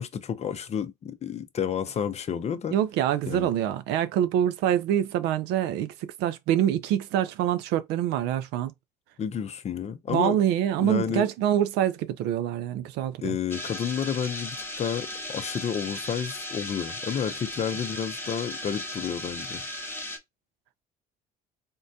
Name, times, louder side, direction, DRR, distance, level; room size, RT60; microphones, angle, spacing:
voice 1, 0.0-2.8 3.2-3.5 9.2-10.4 10.8-11.3 13.2-19.6, left 8 dB, 40° left, 0.5 m, -30 dB
voice 2, 2.7-8.7 10.1-13.4, right 11 dB, 75° right, 0.4 m, -25 dB
sound 1, 13.5-20.2, left 1 dB, 15° left, 0.9 m, -36 dB
3.6 x 2.1 x 2.6 m
supercardioid pair, 80°, 18 cm